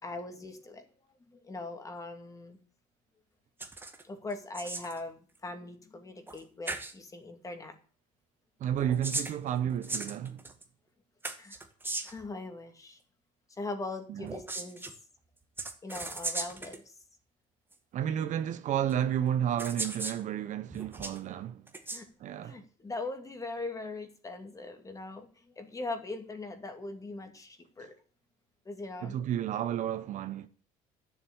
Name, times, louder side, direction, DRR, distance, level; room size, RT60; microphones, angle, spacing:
voice 1, 0.0-0.9 1.3-2.6 4.0-7.7 11.4-11.6 12.0-13.0 13.6-14.9 15.8-16.9 21.9-22.1 22.4-28.0 28.7-29.2, left 2 dB, 20° left, 2.5 m, -40 dB
sound 1, 3.6-4.0 4.3-5.0 6.3-6.4 6.7-6.9 8.7-10.6 11.2-12.3 14.2-14.9 15.6-16.8 17.7-17.8 18.9-19.0 19.6-20.2 20.7-21.2 21.7-22.0, right 2 dB, 15° right, 1.9 m, -37 dB
voice 2, 8.6-10.4 14.1-14.4 17.9-21.6 22.2-22.6 27.8-27.9 29.0-30.5, right 10 dB, 55° right, 0.9 m, -32 dB
11.5 x 7.4 x 8.7 m
cardioid pair, 105°, 16 cm